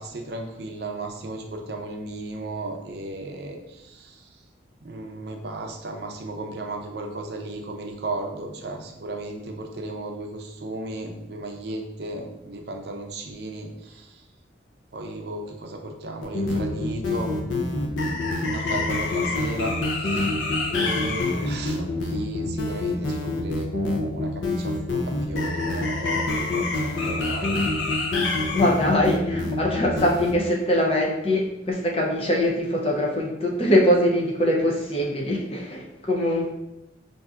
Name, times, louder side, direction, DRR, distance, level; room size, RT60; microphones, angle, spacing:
voice 1, 0.0-4.4 4.8-14.2 14.9-20.3 20.7-27.5, right 2 dB, 60° right, 3 dB, 0.5 m, -35 dB
sound 1, 16.2-30.3, left 2 dB, 80° left, 0.5 m, -26 dB
voice 2, 28.4-36.5, left 1 dB, 30° left, -1 dB, 0.6 m, -22 dB
5.4 x 2.6 x 2.4 m, 0.89 s
head